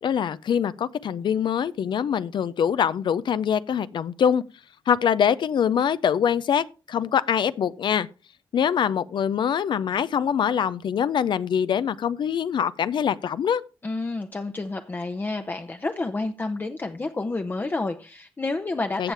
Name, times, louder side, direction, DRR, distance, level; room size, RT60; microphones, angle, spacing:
voice 1, 0.0-4.4 4.9-8.1 8.5-13.6 19.0-19.1, left 8 dB, 70° left, 0.5 m, -24 dB
voice 2, 13.8-19.1, left 3 dB, 25° left, 0.7 m, -29 dB
14.5 x 7.3 x 3.4 m
wide cardioid pair, 120°, 8 cm